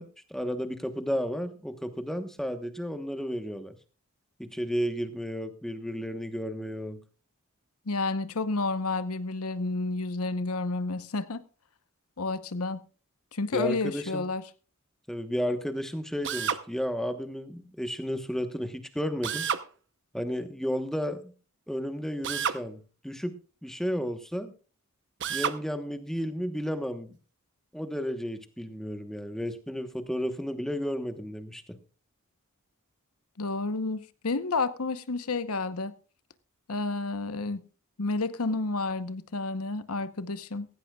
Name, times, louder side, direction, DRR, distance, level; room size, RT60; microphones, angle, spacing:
voice 1, 0.0-3.7 4.4-7.0 13.5-14.2 15.1-19.5 20.1-21.3 21.7-24.5 25.3-27.1 27.7-31.8, equal, ahead, 1.1 m, -33 dB
voice 2, 7.9-11.4 12.2-12.8 13.3-14.4 33.4-35.9 36.7-37.6 38.0-40.7, left 3 dB, 80° left, 1.0 m, -30 dB
Drill, 16.2-16.6 19.2-19.7 22.2-22.6 25.2-25.6, right 7 dB, 55° right, 0.8 m, -29 dB
16.5 x 15.5 x 2.3 m
head